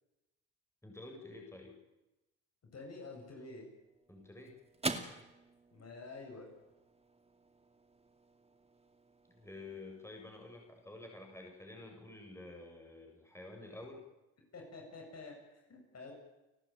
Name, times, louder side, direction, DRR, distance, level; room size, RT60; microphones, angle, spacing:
voice 1, 0.8-1.8 4.1-4.5 9.3-14.0, left 2 dB, 5° left, 1 dB, 7.9 m, -50 dB
voice 2, 2.7-3.7 5.7-6.5 14.5-16.1, left 3 dB, 45° left, 1 dB, 7.8 m, -49 dB
sound 1, 3.5-12.1, right 3 dB, 15° right, 2.6 m, -47 dB
30.0 x 12.0 x 9.4 m, 1.0 s
supercardioid pair, 65°, 35 cm